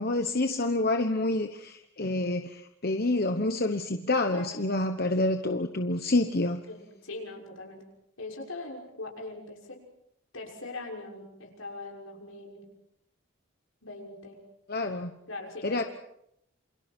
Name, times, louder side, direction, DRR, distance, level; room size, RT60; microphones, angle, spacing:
voice 1, 0.0-6.6 14.7-15.1 15.6-15.8, left 2 dB, 45° left, 6 dB, 1.2 m, -28 dB
voice 2, 4.3-4.6 6.7-7.8 8.2-9.8 10.3-12.7 13.8-14.4 15.3-15.9, left 2 dB, 80° left, 0 dB, 6.5 m, -41 dB
28.5 x 27.5 x 4.6 m, 0.75 s
head